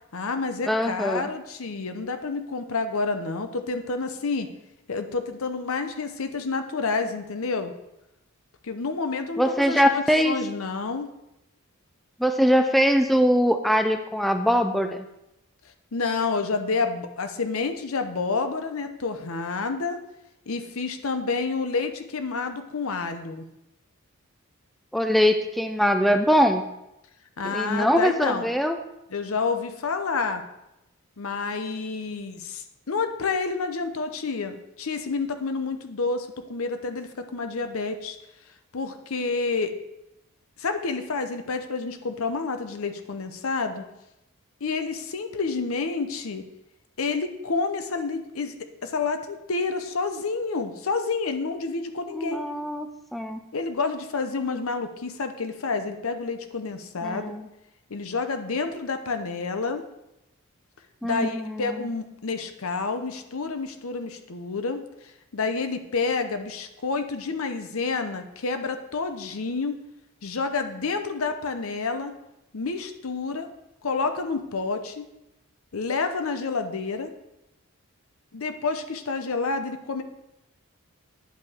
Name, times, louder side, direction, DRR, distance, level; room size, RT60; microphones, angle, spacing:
voice 1, 0.1-4.5 4.9-7.7 8.6-11.1 15.9-20.0 20.5-23.4 27.4-28.5 29.1-30.4 31.2-38.2 38.7-39.8 40.6-43.8 44.6-46.4 47.0-52.5 53.5-57.3 57.9-59.8 61.0-69.8 70.2-72.1 72.5-73.5 73.8-75.1 75.7-77.1 78.3-80.0, left 4 dB, 70° left, 8 dB, 0.7 m, -29 dB
voice 2, 0.7-1.3 9.4-10.4 12.2-15.1 24.9-26.6 27.4-28.8 52.1-53.4 57.0-57.5 61.0-61.9, equal, ahead, 6 dB, 0.3 m, -22 dB
10.0 x 5.5 x 3.5 m, 0.89 s
head